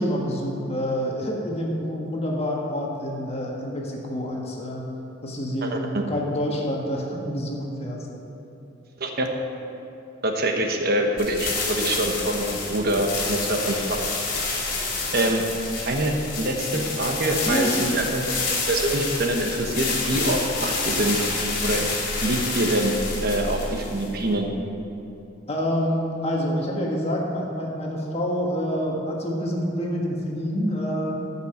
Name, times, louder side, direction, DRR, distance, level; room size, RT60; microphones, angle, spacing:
voice 1, 0.0-4.9 5.2-8.1 17.4-17.7 25.5-31.2, equal, 35° left, -1 dB, 1.6 m, -27 dB
voice 2, 5.6-6.0 9.0-9.3 10.2-13.8 15.1-15.4 15.9-18.3 18.7-21.2 21.6-21.9 22.2-22.9 23.2-24.5, right 1 dB, 55° right, 3 dB, 1.2 m, -25 dB
sound 1, 11.2-24.3, left 3 dB, 50° left, 2.7 m, -28 dB
14.0 x 5.7 x 6.6 m, 2.9 s
head